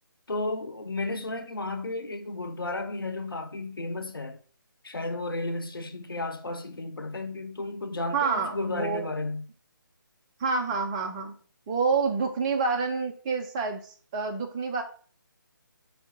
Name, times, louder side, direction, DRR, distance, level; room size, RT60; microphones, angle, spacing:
voice 1, 0.3-4.4 4.8-9.4, left 2 dB, 80° left, 0.8 m, -33 dB
voice 2, 8.1-9.1 10.4-11.3 11.7-14.8, right 4 dB, 15° right, 0.3 m, -28 dB
4.9 x 2.2 x 4.2 m
figure-of-eight pair, 150°, 12 cm